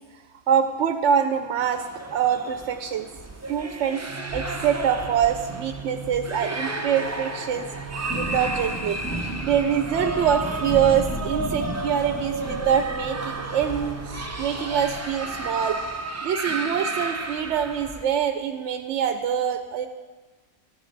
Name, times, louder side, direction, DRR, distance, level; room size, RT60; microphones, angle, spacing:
voice 1, 0.5-3.1 3.5-4.0 4.3-7.7 8.2-9.0 9.4-15.8 16.2-19.9, right 8 dB, 70° right, 7 dB, 0.9 m, -24 dB
sound 1, 1.6-18.0, right 2 dB, 25° right, 0.3 m, -33 dB
sound 2, 4.1-15.0, right 5 dB, 25° left, 3.0 m, -42 dB
Thunder / Rain, 7.7-16.1, right 1 dB, ahead, 1.5 m, -35 dB
12.5 x 9.9 x 4.0 m, 1.3 s
omnidirectional pair, 1.3 m